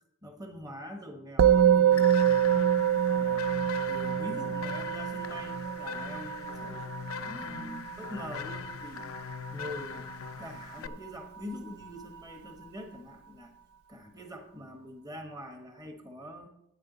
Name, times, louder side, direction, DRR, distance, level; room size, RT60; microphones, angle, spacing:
voice 1, 0.2-2.1 2.9-10.1 10.4-13.5 13.9-16.5, equal, 20° right, 5 dB, 1.1 m, -44 dB
Musical instrument, 1.4-10.9, right 9 dB, 75° right, 0.4 m, -27 dB
sound 1, 1.9-10.9, left 7 dB, 70° left, 0.5 m, -41 dB
12.5 x 8.8 x 3.9 m, 0.84 s
head